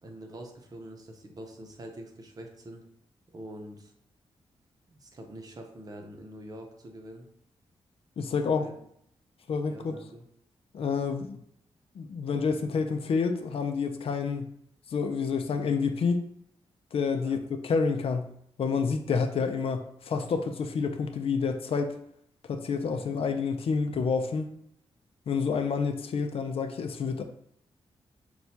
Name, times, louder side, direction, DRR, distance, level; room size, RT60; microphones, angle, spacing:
voice 1, 0.0-2.8 3.3-3.9 4.9-7.3 8.5-8.7 9.6-10.2 17.2-17.4, right 1 dB, 35° right, 2 dB, 0.8 m, -45 dB
voice 2, 8.2-8.7 9.5-10.0 10.7-11.4 12.0-14.5 14.9-16.3 16.9-17.4 17.6-18.3 18.6-22.0 22.5-24.5 25.3-27.2, left 5 dB, 60° left, 6 dB, 0.5 m, -28 dB
6.0 x 2.3 x 2.7 m, 0.71 s
wide cardioid pair, 110°, 11 cm